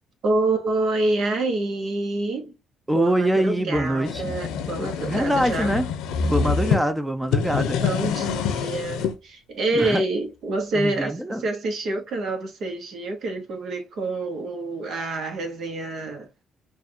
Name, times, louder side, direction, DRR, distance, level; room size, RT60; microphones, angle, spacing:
voice 1, 0.2-2.5 2.9-5.7 7.8-16.4, right 2 dB, 65° right, 1.1 m, -27 dB
voice 2, 2.9-5.9 6.2-7.8 9.7-10.0 10.7-11.4, right 1 dB, 5° right, 0.5 m, -24 dB
sound 1, 3.7-6.8 7.2-9.1, left 6 dB, 90° left, 0.7 m, -26 dB
4.6 x 2.5 x 2.8 m
cardioid pair, 80°, 0 cm